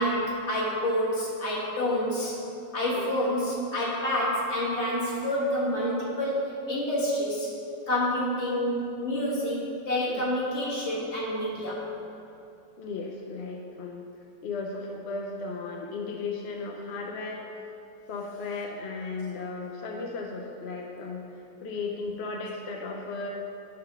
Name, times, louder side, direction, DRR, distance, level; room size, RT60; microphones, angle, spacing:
voice 1, 0.0-2.4 2.7-7.6 7.9-11.9, equal, 40° left, -5 dB, 1.8 m, -28 dB
voice 2, 12.8-14.0 14.4-17.4 18.1-23.3, left 3 dB, 65° left, 0 dB, 0.6 m, -35 dB
9.7 x 3.9 x 5.6 m, 2.6 s
omnidirectional pair, 1.8 m